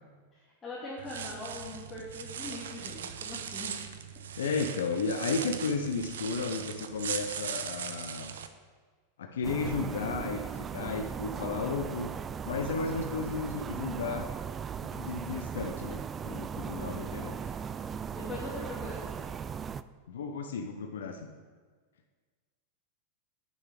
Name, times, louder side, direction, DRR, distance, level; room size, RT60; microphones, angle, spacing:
voice 1, 0.3-3.7 16.8-17.0 18.1-19.3, left 2 dB, 20° left, -7 dB, 2.3 m, -42 dB
sound 1, 1.0-8.5, right 8 dB, 60° right, 0.7 m, -39 dB
voice 2, 4.4-8.3 9.2-12.1 12.5-14.3 14.8-17.5 20.1-21.3, left 4 dB, 60° left, 4 dB, 0.7 m, -33 dB
sound 2, 9.4-19.8, right 7 dB, 20° right, 0.3 m, -38 dB
8.5 x 7.1 x 6.8 m, 1.5 s
figure-of-eight pair, 90°, 0 cm